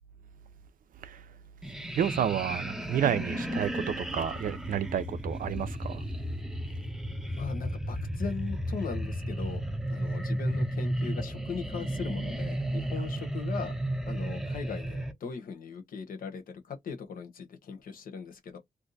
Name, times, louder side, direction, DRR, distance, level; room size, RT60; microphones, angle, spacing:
sound 1, 1.6-15.1, right 1 dB, ahead, 0.5 m, -33 dB
voice 1, 2.0-6.0, right 9 dB, 70° right, 0.5 m, -30 dB
voice 2, 7.3-9.6 9.9-13.7 14.1-18.6, left 5 dB, 75° left, 0.9 m, -39 dB
2.6 x 2.3 x 3.9 m
wide cardioid pair, 145°, 15 cm